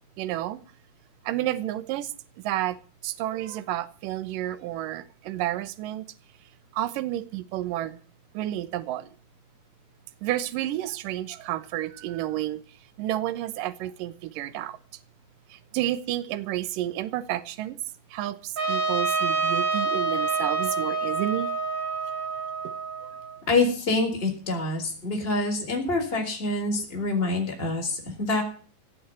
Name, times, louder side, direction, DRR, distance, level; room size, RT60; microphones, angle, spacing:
voice 1, 0.2-0.6 1.2-2.1 2.4-2.8 3.0-6.1 6.7-8.0 8.3-9.1 10.2-12.6 13.0-14.8 15.5-17.8 18.1-21.5 22.6-22.7 23.0-23.1, right 13 dB, 75° right, 2.5 m, -30 dB
Trumpet, 18.6-23.4, right 4 dB, 30° right, 3.1 m, -27 dB
voice 2, 23.5-28.4, left 2 dB, 15° left, 4.1 m, -26 dB
17.5 x 6.4 x 9.5 m
omnidirectional pair, 4.1 m